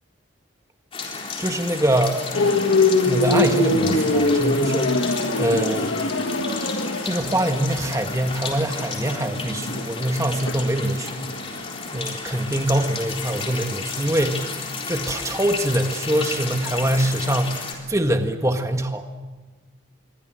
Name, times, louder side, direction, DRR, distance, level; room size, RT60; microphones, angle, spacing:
sound 1, 0.9-17.7, left 4 dB, 25° left, 3.9 m, -32 dB
voice 1, 1.4-2.2 3.0-6.0 7.0-11.2 11.9-14.5 14.9-19.1, right 1 dB, 15° right, 5 dB, 1.6 m, -24 dB
sound 2, 2.3-11.4 11.7-12.0, left 2 dB, 65° left, 1.9 m, -22 dB
27.5 x 23.0 x 7.8 m, 1.3 s
head